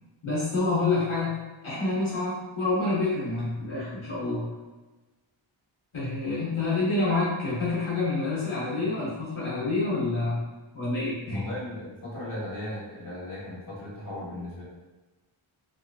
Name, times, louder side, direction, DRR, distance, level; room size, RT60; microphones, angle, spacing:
voice 1, 0.2-4.5 5.9-10.4 10.7-11.4, left 3 dB, 75° left, -8 dB, 1.1 m, -28 dB
voice 2, 11.3-14.6, left 1 dB, 40° left, -7 dB, 1.5 m, -37 dB
3.1 x 2.9 x 2.6 m, 1.2 s
wide cardioid pair, 65°, 48 cm